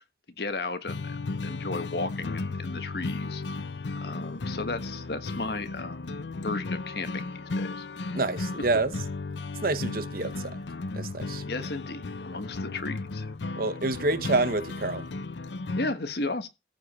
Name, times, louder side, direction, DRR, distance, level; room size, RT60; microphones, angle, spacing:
voice 1, 0.4-3.4 4.0-7.3 7.5-7.8 11.4-13.3 15.8-16.5, left 3 dB, 65° left, 1.4 m, -34 dB
sound 1, 0.9-15.9, left 3 dB, 85° left, 0.7 m, -35 dB
voice 2, 8.1-8.9 9.6-10.6 10.9-11.4 13.6-15.0, right 3 dB, 55° right, 1.1 m, -27 dB
14.5 x 5.1 x 6.7 m
head